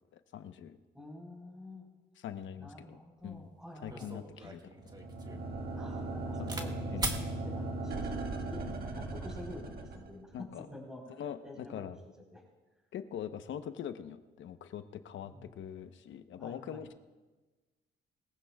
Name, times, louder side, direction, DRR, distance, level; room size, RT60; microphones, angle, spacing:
voice 1, 0.1-0.8 2.2-3.0 3.2-3.5 3.8-4.6 6.4-7.2 8.6-8.8 10.3-10.7 11.2-12.0 12.9-16.9, left 9 dB, 75° left, 9 dB, 0.9 m, -43 dB
voice 2, 0.9-1.9 2.6-4.1 4.4-4.5 5.7-11.9 12.3-12.4 15.2-15.5 16.4-16.9, left 1 dB, 5° right, -2 dB, 4.0 m, -49 dB
sound 1, 3.3-3.4 3.9-6.7 7.0-7.3 8.1-8.5, right 2 dB, 20° right, 1.6 m, -40 dB
sound 2, 4.8-10.4, right 2 dB, 50° right, 1.5 m, -38 dB
23.0 x 15.0 x 2.4 m, 1.2 s
cardioid pair, 90°, 20 cm